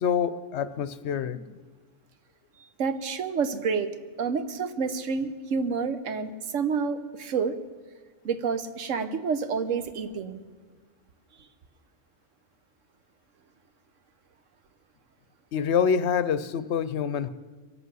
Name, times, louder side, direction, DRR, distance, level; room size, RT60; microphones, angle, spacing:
voice 1, 0.0-1.6 15.5-17.3, left 7 dB, 70° left, 14 dB, 0.9 m, -26 dB
voice 2, 2.8-7.6 8.2-10.4, right 5 dB, 85° right, 10 dB, 1.3 m, -29 dB
23.0 x 8.1 x 6.2 m, 1.4 s
omnidirectional pair, 1.3 m